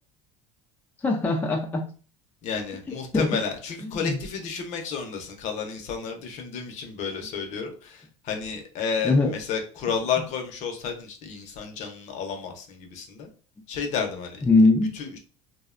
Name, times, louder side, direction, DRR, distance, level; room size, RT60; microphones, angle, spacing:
voice 1, 1.0-1.9 3.1-3.3 3.9-4.2 9.0-9.3 14.4-14.9, left 3 dB, 10° left, 2 dB, 0.4 m, -21 dB
voice 2, 2.4-13.3 13.7-14.5 14.9-15.2, left 6 dB, 50° left, 4 dB, 0.6 m, -31 dB
2.6 x 2.1 x 2.4 m, 0.38 s
supercardioid pair, 115°, 15 cm